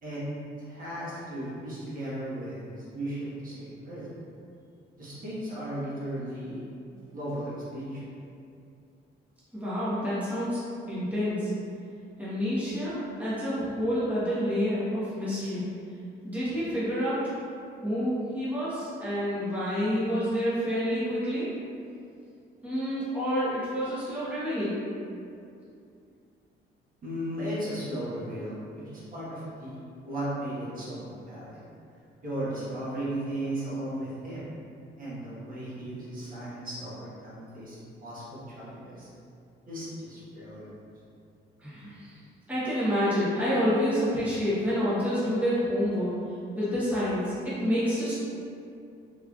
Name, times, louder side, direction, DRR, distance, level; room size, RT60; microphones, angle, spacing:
voice 1, 0.6-4.1 5.0-6.7 7.0-8.1 27.0-29.8 30.0-31.6 32.2-34.4 35.0-39.1 39.7-40.8, right 1 dB, 45° right, -9 dB, 1.4 m, -36 dB
voice 2, 9.5-10.6 10.9-11.5 12.2-15.6 16.2-17.2 17.8-21.5 22.6-24.8 41.6-42.1 42.5-46.1 46.5-48.1, equal, 10° right, -11 dB, 1.1 m, -28 dB
3.6 x 3.1 x 2.4 m, 2.5 s
cardioid pair, 90°, 20 cm